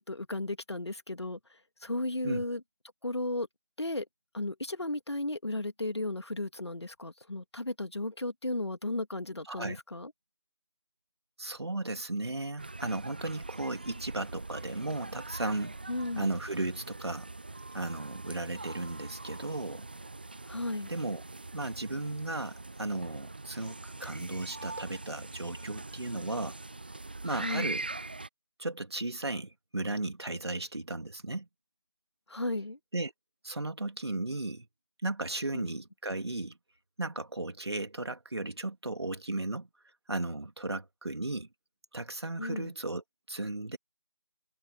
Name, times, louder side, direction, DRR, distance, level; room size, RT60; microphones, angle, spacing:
voice 1, 0.0-2.6 3.0-3.5 3.8-4.1 4.3-10.1 15.9-16.3 20.5-20.9 27.3-27.7 32.3-32.8 35.5-35.7 42.4-42.7, left 2 dB, 75° left, 2.3 m, -35 dB
voice 2, 9.5-9.8 11.4-15.7 16.2-17.3 17.7-19.9 20.9-21.2 21.5-26.6 27.2-27.9 28.6-31.5 32.9-33.1 33.4-34.7 35.0-36.6 37.0-39.7 40.1-41.5 41.9-43.8, right 2 dB, 70° right, 2.9 m, -35 dB
sound 1, 12.6-28.3, right 2 dB, 20° right, 0.5 m, -43 dB
figure-of-eight pair, 165°, 14 cm